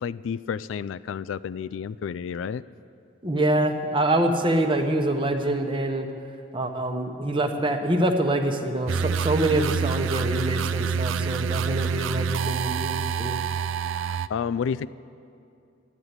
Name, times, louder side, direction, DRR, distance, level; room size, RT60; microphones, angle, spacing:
voice 1, 0.0-2.6 13.9-14.9, left 7 dB, 70° left, 16 dB, 0.3 m, -31 dB
voice 2, 3.2-6.1 6.5-13.4, right 1 dB, 25° right, 5 dB, 1.0 m, -25 dB
sound 1, 8.9-14.3, right 6 dB, 70° right, 0.4 m, -27 dB
12.5 x 10.5 x 9.5 m, 2.5 s
head